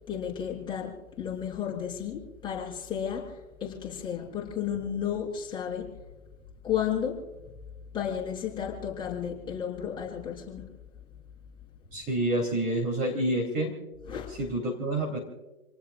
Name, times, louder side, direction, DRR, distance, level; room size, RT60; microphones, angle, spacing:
voice 1, 0.1-5.9 6.6-7.2 7.9-10.7 14.1-14.3, left 8 dB, 10° left, -4 dB, 6.2 m, -33 dB
voice 2, 11.9-13.7 14.3-15.2, right 1 dB, 20° right, 0 dB, 3.5 m, -28 dB
29.5 x 19.5 x 2.4 m, 1.1 s
figure-of-eight pair, 130°, 44 cm